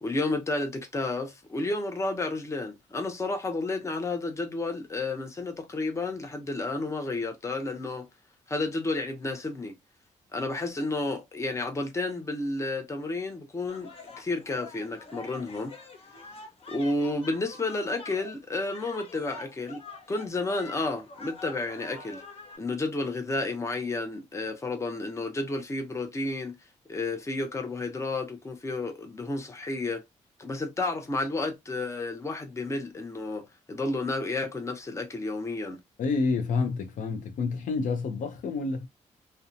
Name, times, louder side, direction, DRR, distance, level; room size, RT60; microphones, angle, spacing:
voice 1, 0.0-8.1 8.5-9.7 10.3-13.9 14.2-15.7 16.7-19.8 20.1-22.2 22.6-26.6 26.9-30.0 30.4-35.8, left 2 dB, 20° left, 0.6 m, -31 dB
sound 1, 13.7-22.6, left 4 dB, 50° left, 0.8 m, -46 dB
voice 2, 36.0-38.9, left 4 dB, 80° left, 0.5 m, -28 dB
2.7 x 2.2 x 2.5 m
cardioid pair, 105°, 13 cm